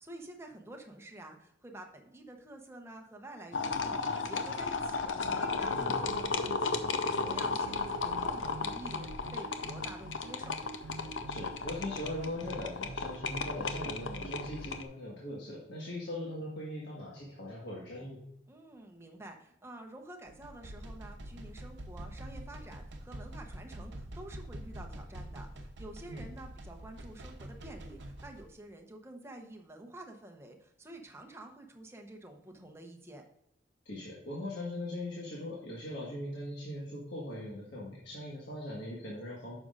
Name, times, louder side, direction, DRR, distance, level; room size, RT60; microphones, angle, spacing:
voice 1, 0.0-10.6 18.5-33.2, right 1 dB, 15° right, 2 dB, 0.8 m, -49 dB
sound 1, 3.5-14.8, left 4 dB, 80° left, 0.7 m, -34 dB
sound 2, 5.2-14.8, right 3 dB, 85° right, 0.4 m, -47 dB
voice 2, 11.3-18.2 26.1-26.2 33.8-39.6, left 1 dB, 60° left, -5 dB, 1.6 m, -40 dB
sound 3, 20.3-28.4, right 1 dB, 65° right, 0.8 m, -45 dB
9.2 x 6.2 x 2.5 m, 0.77 s
head